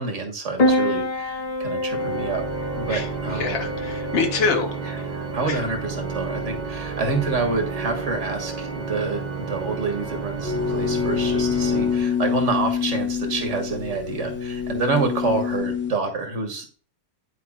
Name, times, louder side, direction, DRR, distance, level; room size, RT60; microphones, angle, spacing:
voice 1, 0.0-2.4 2.8-3.7 4.8-16.7, right 3 dB, 80° right, 5 dB, 1.6 m, -28 dB
Piano, 0.6-15.6, left 1 dB, 35° left, 0.8 m, -31 dB
Organ, 1.9-12.6, right 4 dB, 45° right, 0.7 m, -31 dB
voice 2, 2.9-5.1 5.5-5.6, left 4 dB, 75° left, 6 dB, 1.3 m, -26 dB
sound 1, 10.4-15.9, left 7 dB, 10° left, 0.9 m, -26 dB
10.0 x 4.5 x 2.3 m, 0.42 s
omnidirectional pair, 1.2 m